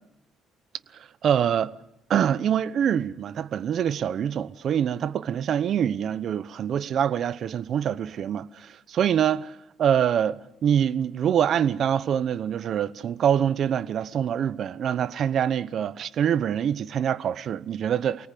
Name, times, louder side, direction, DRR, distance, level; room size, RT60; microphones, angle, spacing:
voice 1, 1.2-1.7 2.1-18.3, right 9 dB, 55° right, 0.9 m, -25 dB
28.5 x 18.5 x 8.5 m
cardioid pair, 120°, 0 cm